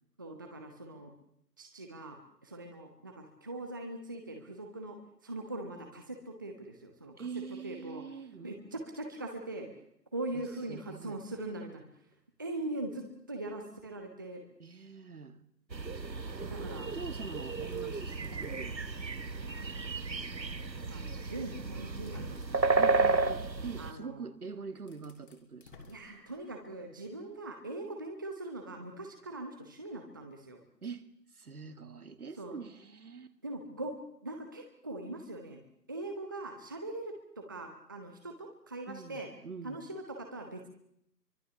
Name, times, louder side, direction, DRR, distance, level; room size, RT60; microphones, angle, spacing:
voice 1, 0.2-1.1 1.6-7.3 7.6-8.0 8.4-9.7 10.1-11.8 12.4-14.4 16.5-16.9 19.4-20.0 20.9-22.7 23.1-23.3 23.8-24.3 25.9-30.6 32.4-32.6 33.4-33.9 34.2-35.6 35.9-39.3 39.6-40.7, right 2 dB, 15° right, 3 dB, 0.9 m, -41 dB
voice 2, 7.2-8.7 10.3-11.2 14.6-15.4 16.4-18.8 22.8-25.9 30.8-31.1 31.3-33.4 38.9-39.8, right 5 dB, 60° right, 10 dB, 2.1 m, -44 dB
sound 1, 15.7-23.9, right 3 dB, 85° right, 1.5 m, -32 dB
sound 2, 17.7-19.3 19.9-20.0 21.2-21.3 21.9-22.9 24.3-24.4 24.8-26.8, left 4 dB, 30° left, 3.2 m, -55 dB
24.0 x 22.0 x 7.0 m, 0.73 s
figure-of-eight pair, 150°, 50 cm